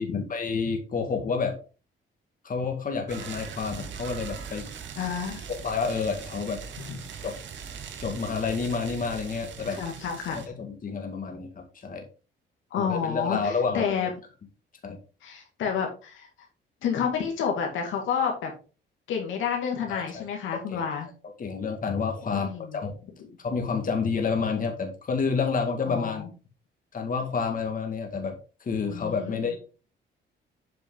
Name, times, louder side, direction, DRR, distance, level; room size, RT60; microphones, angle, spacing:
voice 1, 0.0-1.6 2.4-4.7 5.5-6.6 7.2-7.3 8.0-9.8 10.3-12.1 12.8-14.1 14.8-15.0 19.9-20.2 20.7-20.9 21.4-22.9 23.4-26.3 26.9-29.6, left 5 dB, 45° left, 4 dB, 2.0 m, -29 dB
sound 1, 3.1-10.5, right 7 dB, 70° right, 1.6 m, -40 dB
voice 2, 5.0-5.4 6.9-7.0 9.7-10.5 12.7-14.1 15.2-16.3 16.8-18.5 19.1-21.1 22.3-22.8 23.2-23.3 25.8-26.3 28.9-29.6, left 7 dB, 85° left, 2 dB, 2.2 m, -30 dB
8.3 x 5.1 x 3.8 m, 0.34 s
cardioid pair, 90°, 20 cm